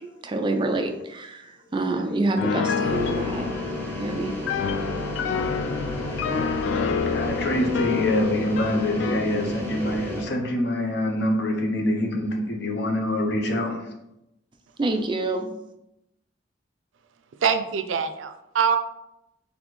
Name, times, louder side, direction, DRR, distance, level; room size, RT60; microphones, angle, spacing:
voice 1, 0.2-1.4 1.7-3.5 4.0-4.3 14.8-15.5, right 2 dB, 25° right, 0.4 m, -26 dB
Piano, 2.4-9.3, left 5 dB, 75° left, 0.3 m, -28 dB
sound 1, 2.8-10.2, left 1 dB, 10° left, 0.9 m, -33 dB
voice 2, 7.0-13.8, left 1 dB, 60° left, 0.7 m, -25 dB
voice 3, 17.4-18.8, right 7 dB, 90° right, 0.4 m, -24 dB
4.1 x 3.4 x 3.1 m
head